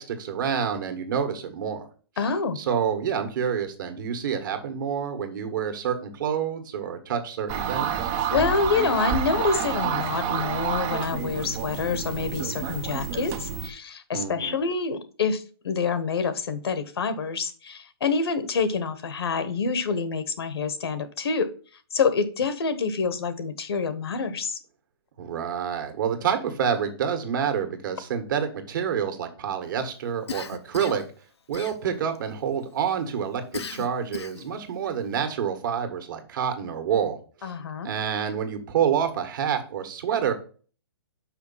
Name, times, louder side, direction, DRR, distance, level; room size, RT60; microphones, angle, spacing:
voice 1, 0.0-1.8 2.5-8.1 14.1-14.6 25.2-31.0 31.5-37.5 37.8-40.3, right 8 dB, 50° right, 1.7 m, -28 dB
voice 2, 2.2-2.6 8.3-21.5 21.9-24.6 37.4-37.9, left 5 dB, 70° left, 1.3 m, -27 dB
sound 1, 7.5-13.7, right 7 dB, 20° right, 0.6 m, -29 dB
Cough, 30.3-31.1 31.5-32.2 33.5-34.5, left 6 dB, 90° left, 0.9 m, -37 dB
5.7 x 5.1 x 5.6 m
hypercardioid pair, 155°, 13 cm